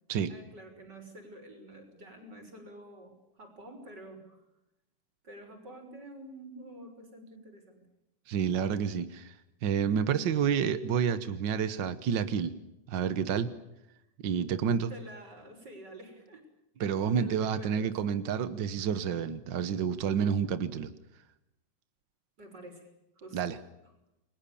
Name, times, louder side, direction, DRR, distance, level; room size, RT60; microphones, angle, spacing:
voice 1, 0.3-4.4 5.2-7.8 14.9-16.4 16.9-17.9 22.4-22.9 23.2-23.6, right 1 dB, 30° right, 5 dB, 6.7 m, -48 dB
voice 2, 8.3-9.4 9.6-12.5 12.9-13.5 14.2-14.9 16.8-20.9 23.3-23.6, right 7 dB, 65° right, 12 dB, 1.1 m, -29 dB
30.0 x 22.5 x 7.1 m, 0.89 s
omnidirectional pair, 3.7 m